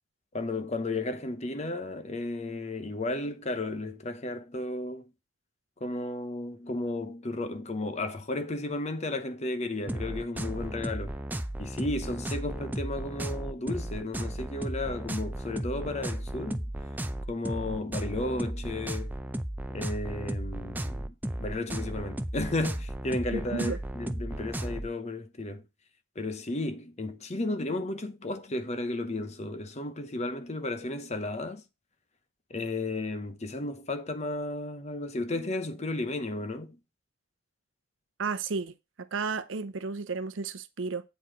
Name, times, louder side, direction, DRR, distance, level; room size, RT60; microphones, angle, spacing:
voice 1, 0.3-5.1 5.8-11.2 11.6-16.6 17.3-19.1 19.7-21.1 21.4-25.6 26.2-31.6 32.5-36.8, left 2 dB, 35° left, 0.9 m, -33 dB
sound 1, 9.9-24.9, right 1 dB, 10° right, 0.5 m, -35 dB
voice 2, 23.3-23.8 38.2-38.7 39.1-41.0, right 4 dB, 70° right, 0.7 m, -33 dB
8.2 x 4.7 x 5.1 m
head